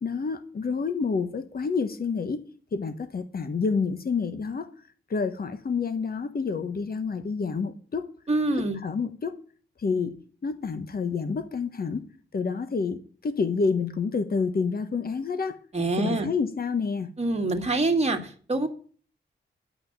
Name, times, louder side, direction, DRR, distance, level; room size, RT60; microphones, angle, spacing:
voice 1, 0.0-2.4 2.7-4.7 5.1-8.1 8.8-9.4 9.8-15.6 16.0-17.1, left 5 dB, 45° left, 1.2 m, -28 dB
voice 2, 8.3-8.8 15.7-16.3 17.2-18.7, right 2 dB, 30° right, 2.0 m, -25 dB
11.0 x 5.7 x 7.9 m
cardioid pair, 85°, 21 cm